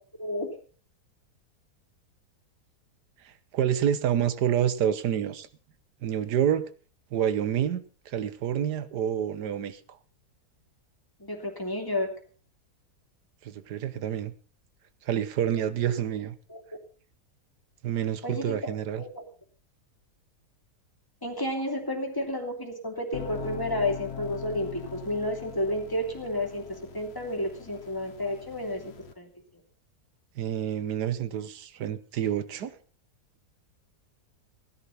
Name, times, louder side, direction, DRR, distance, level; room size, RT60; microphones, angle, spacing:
voice 1, 0.2-0.5 11.2-12.1 16.5-16.6 18.2-18.7 19.0-19.2 21.2-29.3, left 1 dB, 15° left, 3 dB, 2.8 m, -31 dB
voice 2, 3.2-5.5 6.0-6.7 7.1-9.8 13.4-14.3 15.0-16.4 17.8-19.0 30.4-32.8, right 9 dB, 85° right, 15 dB, 1.6 m, -28 dB
sound 1, 23.1-29.1, left 8 dB, 45° left, 1.3 m, -41 dB
16.5 x 10.5 x 5.7 m, 0.41 s
omnidirectional pair, 1.7 m